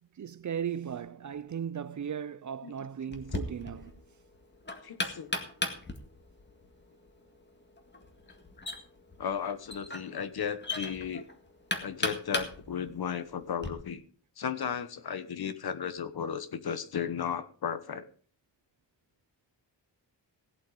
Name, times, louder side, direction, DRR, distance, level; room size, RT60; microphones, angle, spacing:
voice 1, 0.0-4.0, right 8 dB, 45° right, 0.5 m, -37 dB
Knock, 3.1-13.7, left 2 dB, 25° left, 1.8 m, -38 dB
voice 2, 4.8-5.4 9.2-11.2 11.8-14.0 14.4-18.1, left 7 dB, 55° left, 1.3 m, -35 dB
17.5 x 8.0 x 4.9 m
wide cardioid pair, 155°, 43 cm